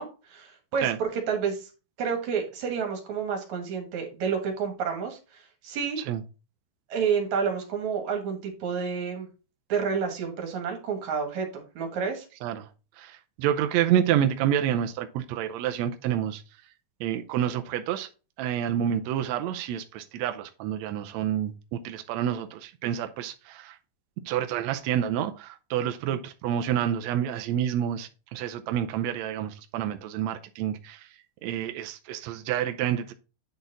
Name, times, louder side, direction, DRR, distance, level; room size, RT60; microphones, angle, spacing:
voice 1, 0.0-1.7 2.0-6.0 6.9-9.3 9.7-12.2, right 6 dB, 65° right, 2.8 m, -30 dB
voice 2, 13.0-16.4 17.0-18.1 18.4-23.8 24.3-31.1 31.4-33.1, right 10 dB, 80° right, 1.6 m, -28 dB
9.3 x 4.1 x 3.9 m
omnidirectional pair, 3.7 m